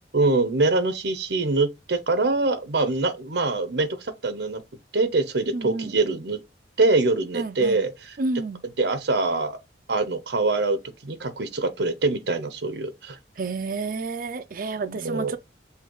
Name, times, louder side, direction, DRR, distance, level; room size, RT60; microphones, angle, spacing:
voice 1, 0.1-4.6 4.9-6.4 6.8-8.2 8.8-9.6 9.9-13.2 14.9-15.3, right 3 dB, 70° right, 0.8 m, -24 dB
voice 2, 5.5-6.0 7.3-7.8 8.2-8.6 13.4-15.4, right 3 dB, 50° right, 0.5 m, -30 dB
5.6 x 2.3 x 3.0 m
head